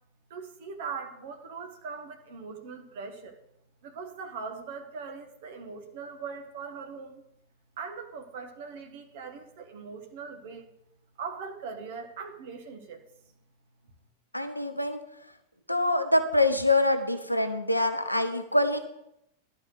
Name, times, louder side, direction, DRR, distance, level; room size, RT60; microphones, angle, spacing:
voice 1, 0.3-3.4 3.8-7.2 7.8-10.7 11.2-13.0 13.8-13.9, right 5 dB, 55° right, 5 dB, 1.5 m, -40 dB
voice 2, 14.3-15.0 15.7-18.8, left 2 dB, 90° left, 7 dB, 0.9 m, -25 dB
11.5 x 4.2 x 7.9 m, 0.81 s
figure-of-eight pair, 90°, 0 cm